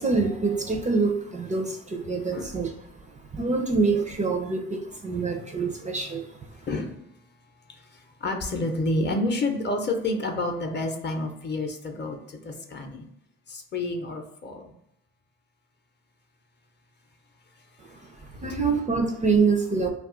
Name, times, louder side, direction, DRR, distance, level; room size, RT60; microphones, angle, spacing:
voice 1, 0.0-2.7 3.3-6.4 17.9-19.9, right 4 dB, 25° right, 4 dB, 0.4 m, -25 dB
voice 2, 6.7-7.0 7.7-13.0 13.5-14.7 18.5-18.6, left 2 dB, 35° left, 4 dB, 0.6 m, -29 dB
2.3 x 2.3 x 3.7 m, 0.78 s
cardioid pair, 90°, 30 cm